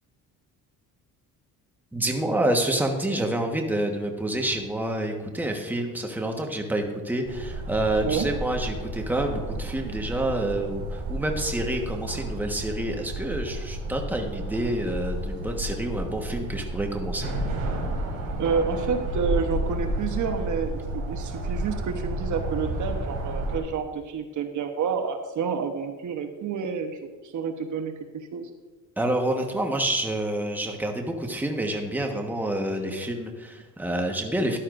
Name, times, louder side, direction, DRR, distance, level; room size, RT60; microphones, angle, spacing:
voice 1, 1.9-17.3 29.0-34.6, right 1 dB, 5° right, 2 dB, 1.3 m, -28 dB
sound 1, 7.2-23.6, right 1 dB, 75° right, 3.4 m, -31 dB
voice 2, 18.4-27.9 28.3-28.5, right 6 dB, 55° right, 6 dB, 1.0 m, -29 dB
13.0 x 11.5 x 2.6 m, 1.2 s
cardioid pair, 105°, 35 cm